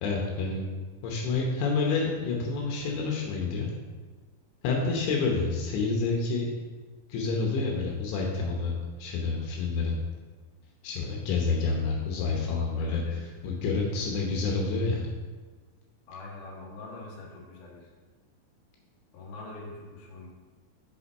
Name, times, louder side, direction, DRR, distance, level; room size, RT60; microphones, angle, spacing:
voice 1, 0.0-0.6 1.0-3.7 4.6-6.6 7.1-8.7 9.0-9.9 10.8-15.0, left 4 dB, 80° left, 0 dB, 3.2 m, -28 dB
voice 2, 12.8-13.2 16.1-17.9 19.1-20.3, left 2 dB, 55° left, -4 dB, 2.7 m, -43 dB
6.9 x 5.6 x 5.4 m, 1.4 s
omnidirectional pair, 5.3 m